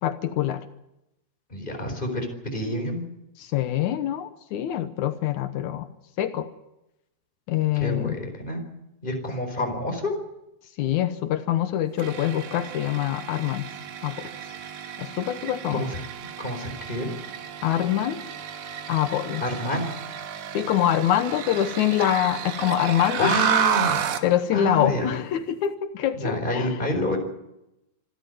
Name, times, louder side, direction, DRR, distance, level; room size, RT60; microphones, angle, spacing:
voice 1, 0.0-0.6 3.4-5.9 6.2-6.5 7.5-8.2 10.8-13.7 14.0-14.3 15.0-15.8 17.6-18.2 18.9-19.4 20.5-23.3 24.2-26.7, left 11 dB, 80° left, 9 dB, 2.3 m, -25 dB
voice 2, 1.5-3.0 7.7-8.6 9.0-10.1 15.7-16.0 16.4-17.1 19.4-19.9 23.2-24.0 24.5-25.1 26.2-27.2, left 1 dB, 15° left, 4 dB, 4.3 m, -28 dB
sound 1, 12.0-24.3, right 8 dB, 85° right, 2.9 m, -31 dB
26.5 x 11.5 x 9.2 m, 0.90 s
omnidirectional pair, 3.4 m